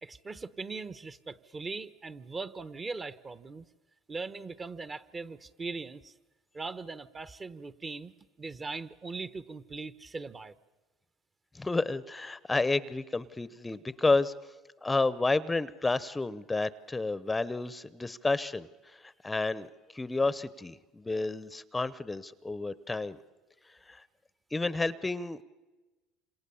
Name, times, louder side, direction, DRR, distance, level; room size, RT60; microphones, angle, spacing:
voice 1, 0.0-3.7 4.1-6.1 6.5-10.5, right 4 dB, 25° right, 14 dB, 1.0 m, -40 dB
voice 2, 11.5-14.3 14.8-19.7 19.9-23.2 23.9-24.0 24.5-25.4, left 3 dB, 15° left, 16 dB, 0.8 m, -30 dB
27.5 x 27.0 x 7.1 m, 1.2 s
supercardioid pair, 100°, 0 cm